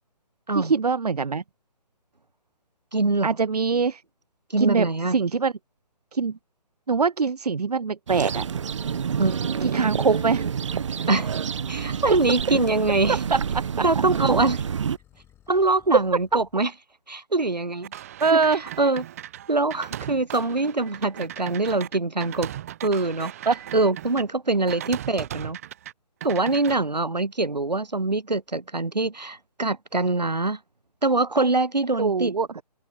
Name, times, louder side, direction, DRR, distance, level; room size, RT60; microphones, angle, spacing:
voice 1, 0.5-1.4 3.2-4.0 4.6-5.5 6.1-6.4 6.9-8.5 9.6-10.5 11.9-12.0 13.3-13.6 18.2-18.6 23.5-23.6 32.0-32.5, right 5 dB, 70° right, 0.9 m, -23 dB
voice 2, 2.9-3.4 4.5-5.2 9.2-10.2 11.1-11.3 11.7-13.2 13.8-14.6 15.5-16.7 17.1-17.9 18.3-18.4 18.8-19.0 19.5-22.5 22.8-23.3 23.7-25.6 26.2-30.6 31.0-32.3, right 2 dB, 85° right, 1.7 m, -24 dB
sound 1, 8.1-15.0, right 7 dB, 45° right, 1.3 m, -28 dB
sound 2, 11.5-16.7, left 11 dB, 10° left, 2.9 m, -56 dB
sound 3, 17.8-24.2 24.7-25.9 26.2-26.8, right 12 dB, 20° right, 0.6 m, -38 dB
figure-of-eight pair, 140°, 21 cm